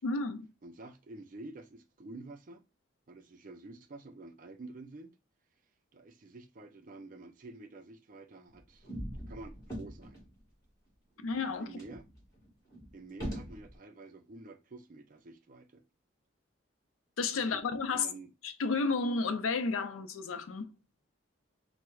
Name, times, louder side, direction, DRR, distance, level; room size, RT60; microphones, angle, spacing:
voice 1, 0.0-0.5 11.2-11.7 17.2-18.1 18.4-20.7, left 4 dB, 90° left, 0.4 m, -32 dB
voice 2, 0.6-2.6 3.1-5.2 5.9-8.9 9.3-10.2 11.6-12.1 12.9-15.8 17.5-17.6 17.9-18.3, right 2 dB, 40° right, 0.4 m, -49 dB
sound 1, 8.5-10.4 10.9-11.0 11.2-11.3 11.8-13.8, equal, 20° left, 1.4 m, -42 dB
4.4 x 2.1 x 2.2 m
head